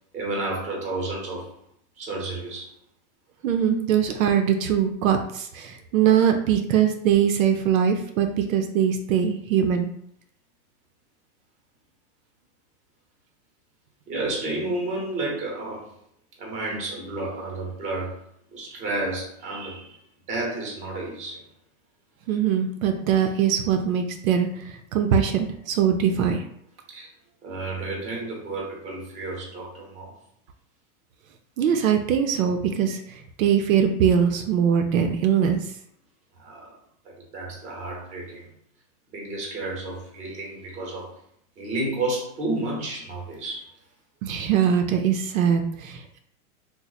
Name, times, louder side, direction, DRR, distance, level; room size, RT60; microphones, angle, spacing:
voice 1, 0.1-1.6 2.0-2.7 3.7-3.8 14.1-15.9 16.4-18.2 18.5-20.0 20.3-21.4 26.9-27.1 27.4-30.1 36.4-36.7 37.0-38.5 39.1-41.1 41.6-43.7, right 2 dB, 15° right, -1 dB, 0.7 m, -31 dB
voice 2, 3.4-9.9 22.3-26.4 31.6-35.7 44.2-46.2, right 8 dB, 70° right, 5 dB, 0.5 m, -22 dB
2.9 x 2.1 x 3.9 m, 0.69 s
supercardioid pair, 150°, 43 cm